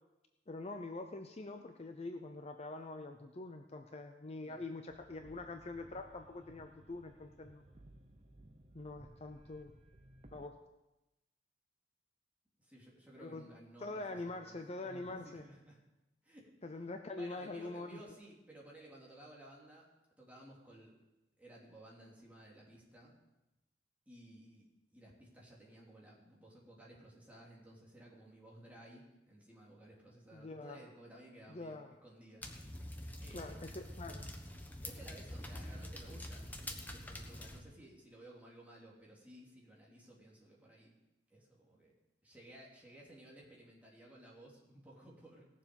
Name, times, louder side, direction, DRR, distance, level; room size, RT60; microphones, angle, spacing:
voice 1, 0.5-7.6 8.7-9.7 10.3-10.6 13.2-13.5 13.8-15.4 16.6-18.0 30.3-30.8 31.5-31.9 33.3-34.3, left 2 dB, 35° left, 6 dB, 0.6 m, -44 dB
sound 1, 4.9-10.5, right 1 dB, 35° right, 1.0 m, -60 dB
voice 2, 12.6-14.6 14.8-15.8 16.2-16.5 17.1-19.9 20.2-21.0 21.4-23.1 24.1-32.4 33.2-33.6 34.8-40.9 41.3-41.9 42.2-45.5, right 1 dB, 10° right, -4 dB, 3.0 m, -56 dB
sound 2, 32.4-37.6, left 1 dB, 10° left, 1.1 m, -46 dB
18.5 x 7.2 x 5.3 m, 0.98 s
head